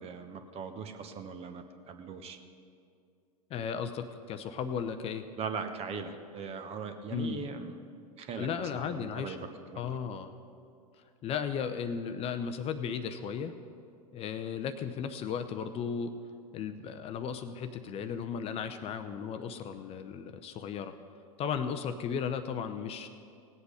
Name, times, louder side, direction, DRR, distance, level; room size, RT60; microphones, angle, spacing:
voice 1, 0.0-2.4 5.4-7.8 8.2-8.5 8.8-9.4 9.7-10.0, right 5 dB, 30° right, 8 dB, 1.1 m, -40 dB
voice 2, 3.5-5.3 7.1-7.4 8.4-9.4 9.7-10.3 11.2-13.5 14.1-16.1 16.5-20.9 21.4-23.1, left 7 dB, 30° left, 8 dB, 0.6 m, -35 dB
18.0 x 8.1 x 5.0 m, 2.4 s
figure-of-eight pair, 90°, 20 cm